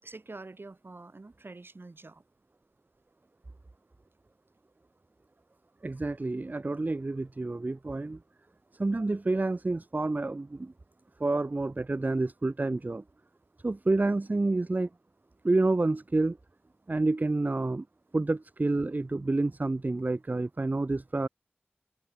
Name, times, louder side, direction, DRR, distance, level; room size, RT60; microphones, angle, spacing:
voice 1, 0.0-2.2, right 3 dB, 80° right, 3.9 m, -46 dB
voice 2, 5.8-8.2 8.7-10.7 11.2-13.0 13.6-14.9 15.4-16.4 16.9-17.9 18.1-21.3, right 2 dB, 50° right, 0.5 m, -28 dB
wide cardioid pair, 50°, 4 cm